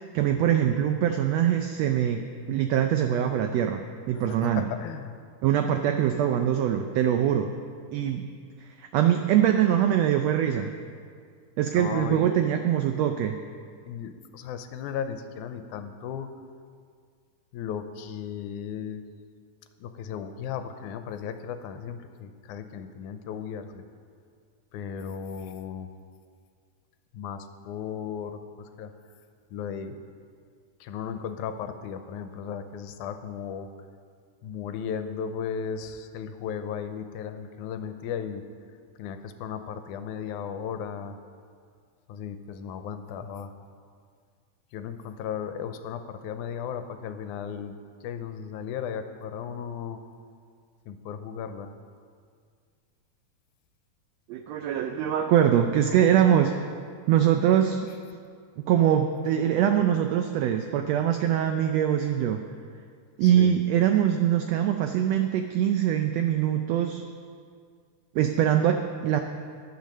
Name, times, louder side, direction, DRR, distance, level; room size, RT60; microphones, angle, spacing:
voice 1, 0.1-2.2 2.5-4.6 5.4-7.5 7.9-8.3 8.8-10.7 11.6-13.4 54.3-56.7 57.1-57.9 58.6-62.4 63.2-67.0 68.1-69.2, right 10 dB, 90° right, 6 dB, 1.5 m, -23 dB
voice 2, 4.1-5.1 11.7-12.3 13.9-16.3 17.5-19.0 19.8-23.9 24.7-25.9 27.1-28.9 29.5-30.0 30.8-33.7 34.4-38.4 39.0-41.2 42.1-43.5 44.7-50.0 50.9-51.7 63.2-63.6, left 7 dB, 85° left, 8 dB, 2.0 m, -35 dB
10.5 x 8.8 x 6.4 m, 2.1 s
omnidirectional pair, 3.6 m